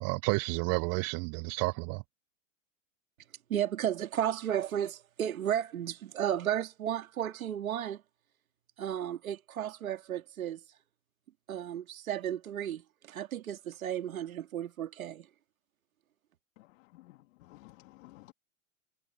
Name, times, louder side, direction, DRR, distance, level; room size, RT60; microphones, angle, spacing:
voice 1, 0.0-2.0, right 28 dB, 40° right, 0.4 m, -31 dB
voice 2, 3.5-8.0 8.8-10.6 11.5-12.8 13.1-15.3, right 10 dB, 90° right, 2.5 m, -33 dB
voice 3, 16.6-18.3, left 18 dB, 70° left, 3.0 m, -55 dB
hypercardioid pair, 105°, 40 cm